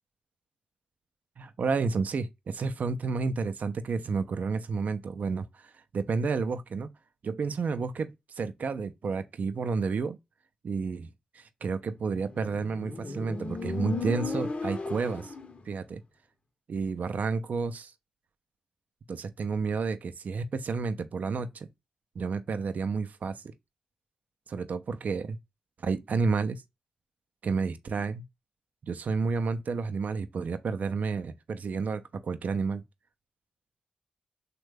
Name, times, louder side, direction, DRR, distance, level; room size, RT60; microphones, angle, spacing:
voice 1, 1.4-6.9 7.2-10.2 10.6-11.1 11.3-15.3 15.7-16.0 16.7-17.9 19.1-21.7 22.2-23.4 24.5-25.4 25.8-26.6 27.4-28.2 28.8-32.8, right 4 dB, 60° right, 0.4 m, -31 dB
Motorcycle, 12.1-15.6, left 3 dB, 45° left, 0.7 m, -35 dB
3.2 x 2.2 x 3.2 m
cardioid pair, 50°, 3 cm